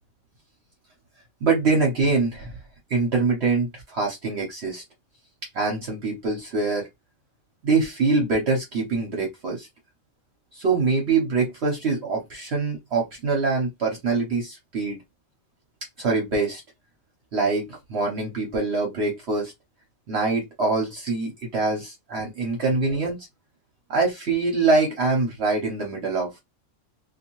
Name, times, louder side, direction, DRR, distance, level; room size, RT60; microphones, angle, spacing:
voice 1, 1.4-2.6 2.9-4.8 5.5-6.8 7.6-9.7 10.5-15.0 16.0-16.6 17.3-19.5 20.1-23.2 23.9-26.3, right 3 dB, 60° right, 1.0 m, -24 dB
2.6 x 2.4 x 2.9 m
omnidirectional pair, 1.3 m